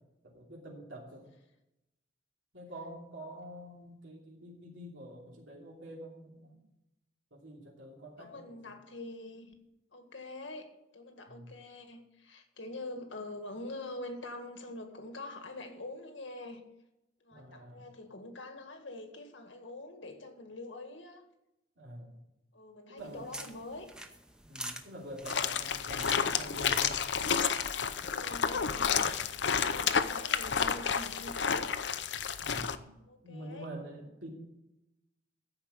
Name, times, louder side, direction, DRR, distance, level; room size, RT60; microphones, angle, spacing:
voice 1, 0.2-1.2 2.5-6.5 7.3-8.4 11.3-11.5 17.3-17.9 21.8-22.2 22.9-23.3 24.4-27.0 32.4-34.3, right 1 dB, 85° right, -3 dB, 3.1 m, -46 dB
voice 2, 8.2-9.5 9.9-16.6 17.2-21.2 22.5-23.9 25.5-25.7 28.0-29.2 29.6-31.8 33.0-33.7, left 2 dB, 85° left, 5 dB, 1.9 m, -45 dB
sound 1, 23.0-28.0, right 1 dB, 5° right, 0.7 m, -47 dB
sound 2, 25.3-32.8, left 7 dB, 70° left, 0.6 m, -30 dB
14.5 x 5.0 x 8.3 m, 0.90 s
head